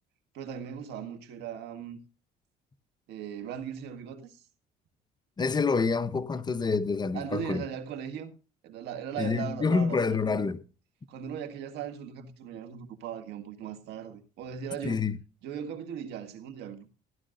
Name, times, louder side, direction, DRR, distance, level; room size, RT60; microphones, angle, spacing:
voice 1, 0.3-2.0 3.1-4.4 7.1-8.3 8.6-10.5 11.1-15.0 15.4-16.9, right 8 dB, 80° right, 1.8 m, -38 dB
voice 2, 5.4-7.6 9.2-10.6 14.8-15.2, left 4 dB, 25° left, 0.8 m, -27 dB
15.5 x 11.5 x 2.5 m
cardioid pair, 110°, 17 cm